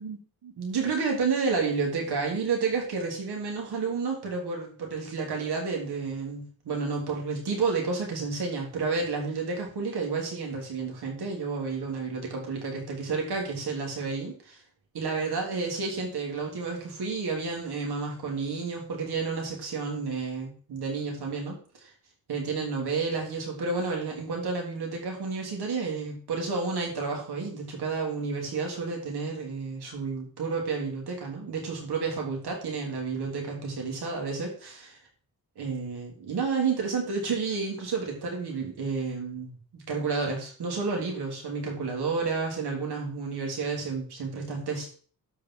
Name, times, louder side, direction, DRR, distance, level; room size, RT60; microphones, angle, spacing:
voice 1, 0.4-14.6 14.9-21.9 22.3-35.0 35.6-44.9, right 4 dB, 90° right, 0 dB, 3.8 m, -31 dB
12.5 x 5.4 x 4.9 m, 0.42 s
wide cardioid pair, 115°, 38 cm